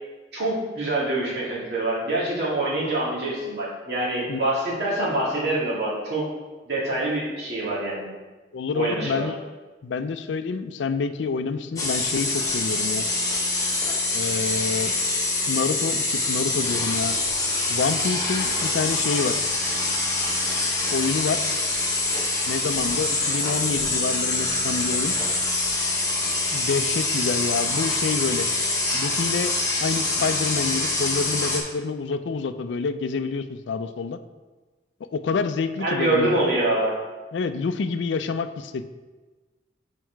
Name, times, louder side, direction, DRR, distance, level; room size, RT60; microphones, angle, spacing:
voice 1, 0.3-6.2 6.7-8.0 8.7-9.3 35.8-37.0, right 2 dB, 65° right, -6 dB, 2.2 m, -25 dB
voice 2, 8.5-9.4 9.8-13.1 14.1-14.9 15.5-17.2 17.7-19.4 20.9-21.5 22.5-25.1 26.5-28.5 28.9-29.5 29.8-34.2 35.1-36.4 37.3-38.9, left 5 dB, 80° left, 11 dB, 0.4 m, -27 dB
sound 1, 11.8-31.6, left 2 dB, 20° left, 1.1 m, -25 dB
6.4 x 4.8 x 4.5 m, 1.3 s
head